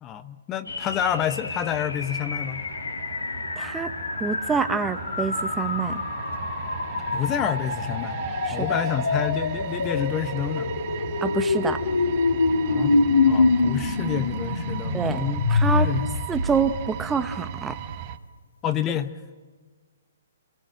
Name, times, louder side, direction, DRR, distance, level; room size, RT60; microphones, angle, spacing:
voice 1, 0.0-2.6 7.1-8.2 8.5-10.7 12.7-13.0 13.2-16.2 18.6-19.1, left 10 dB, 25° left, 11 dB, 0.9 m, -29 dB
sound 1, 0.7-17.0, left 3 dB, 80° left, 2.1 m, -26 dB
sound 2, 0.9-18.2, right 9 dB, 40° right, 1.3 m, -37 dB
voice 2, 3.6-3.9 4.2-6.0 8.5-8.8 11.2-11.8 14.9-15.2 15.5-15.9 16.3-17.8, right 5 dB, 10° right, 11 dB, 1.0 m, -26 dB
28.5 x 18.5 x 7.7 m, 1.5 s
figure-of-eight pair, 130°, 0 cm